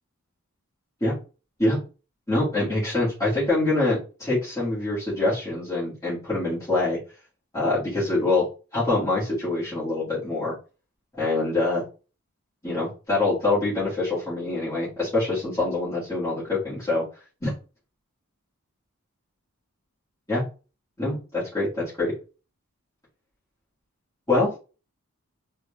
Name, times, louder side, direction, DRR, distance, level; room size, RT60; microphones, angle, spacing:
voice 1, 2.3-7.0 7.5-8.5 8.7-10.5 11.2-11.8 12.6-17.0 17.4-17.5 20.3-20.4 21.0-22.1 24.3-24.5, left 2 dB, 15° left, -12 dB, 1.7 m, -25 dB
3.6 x 2.3 x 3.4 m, 0.33 s
head